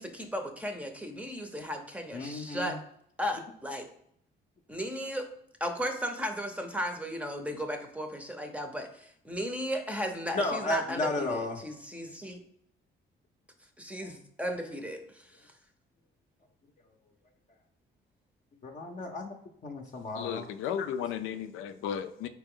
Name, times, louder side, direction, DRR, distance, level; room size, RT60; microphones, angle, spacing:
voice 1, 0.0-2.8 3.2-3.9 4.7-5.3 5.6-12.4 13.8-15.2, equal, 5° right, 5 dB, 0.6 m, -35 dB
voice 2, 2.1-2.8 10.3-11.6 14.0-14.1 18.6-19.4 19.6-20.5, left 2 dB, 40° left, 1 dB, 0.6 m, -33 dB
voice 3, 20.1-22.3, left 8 dB, 85° left, 10 dB, 0.4 m, -34 dB
4.1 x 2.9 x 3.7 m, 0.70 s
cardioid pair, 90°, 20 cm